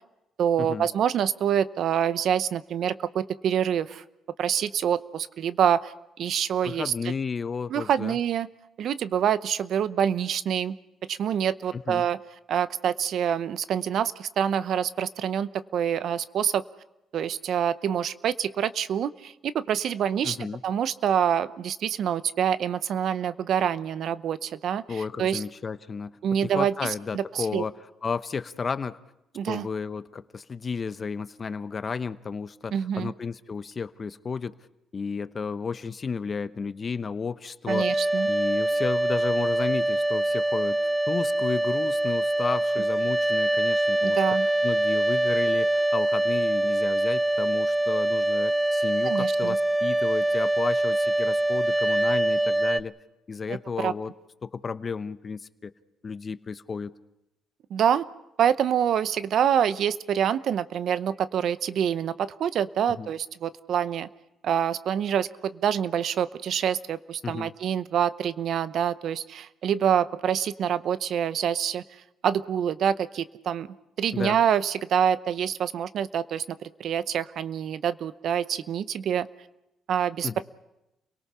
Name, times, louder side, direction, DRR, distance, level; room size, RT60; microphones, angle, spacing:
voice 1, 0.4-4.0 4.4-6.9 7.7-8.5 8.8-10.8 11.1-12.2 12.5-16.6 17.1-20.4 20.6-25.4 26.2-27.6 29.3-29.7 32.7-33.1 37.7-38.3 44.0-44.5 49.0-49.6 53.8-53.9 57.7-58.1 58.4-64.1 64.4-71.8 72.2-73.7 74.0-79.3 79.9-80.4, right 9 dB, 65° right, 15 dB, 0.7 m, -26 dB
voice 2, 6.6-8.1 11.7-12.0 20.2-20.6 24.9-26.1 26.4-27.7 28.0-29.0 29.5-34.5 34.9-40.8 41.1-44.2 44.6-52.9 53.3-54.1 54.4-55.7 56.0-56.9 62.9-63.1 67.2-67.5 74.1-74.4 80.2-80.4, left 5 dB, 40° left, 13 dB, 0.9 m, -33 dB
sound 1, 37.7-52.8, right 1 dB, 5° right, 0.7 m, -24 dB
29.5 x 18.5 x 5.6 m, 0.90 s
supercardioid pair, 70°, 0 cm